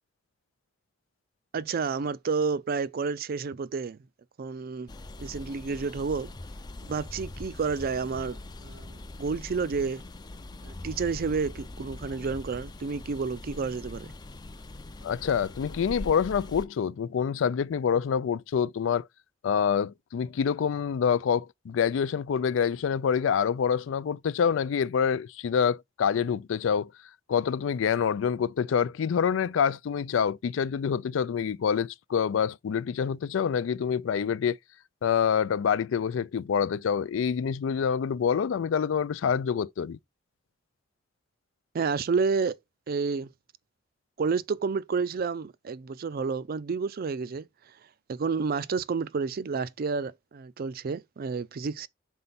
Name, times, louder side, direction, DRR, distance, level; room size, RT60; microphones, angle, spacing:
voice 1, 1.5-4.0 4.4-4.9 5.2-6.3 6.8-10.0 10.6-14.1 41.7-42.6 42.9-43.3 44.2-47.4 48.1-51.9, right 5 dB, 50° right, 0.4 m, -30 dB
sound 1, 4.9-16.7, left 2 dB, 20° left, 0.4 m, -42 dB
voice 2, 15.0-19.1 19.4-26.9 27.3-34.6 35.0-40.0, left 7 dB, 85° left, 0.4 m, -26 dB
5.5 x 4.3 x 4.0 m
head